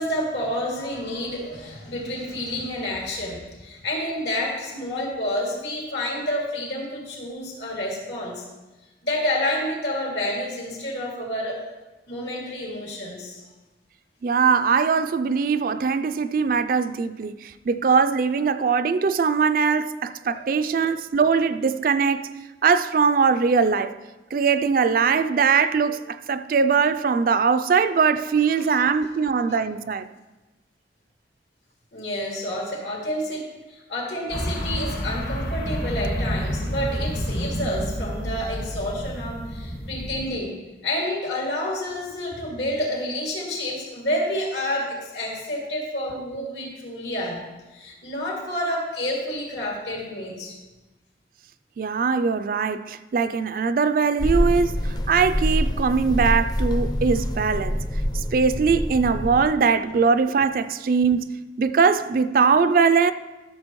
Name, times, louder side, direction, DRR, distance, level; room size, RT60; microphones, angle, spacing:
voice 1, 0.0-8.4 9.0-11.7 12.1-13.5 20.3-20.7 25.8-25.9 28.5-28.6 31.9-40.6 40.8-47.4 47.7-50.6, left 1 dB, 75° left, 2.5 m, -29 dB
voice 2, 14.2-22.3 22.6-23.9 24.3-30.1 51.8-57.8 58.1-61.3 61.6-63.1, right 5 dB, 50° right, 0.3 m, -21 dB
sound 1, 34.3-40.3, equal, 60° left, 1.3 m, -29 dB
sound 2, 54.2-59.5, equal, 20° left, 0.5 m, -25 dB
13.5 x 6.7 x 3.0 m
head